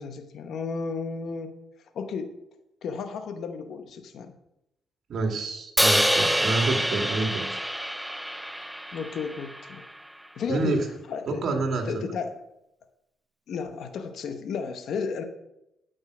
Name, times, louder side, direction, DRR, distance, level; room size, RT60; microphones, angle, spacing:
voice 1, 0.0-1.5 1.9-2.4 2.8-4.3 8.9-9.8 10.4-11.5 11.9-12.3 13.5-15.2, left 5 dB, 70° left, 7 dB, 0.9 m, -33 dB
voice 2, 5.1-7.6 10.5-10.9 11.3-12.0, right 3 dB, 60° right, 3 dB, 2.2 m, -28 dB
Crash cymbal, 5.8-10.0, equal, 5° right, 0.4 m, -26 dB
9.5 x 5.4 x 6.1 m, 0.85 s
cardioid pair, 90°, 0 cm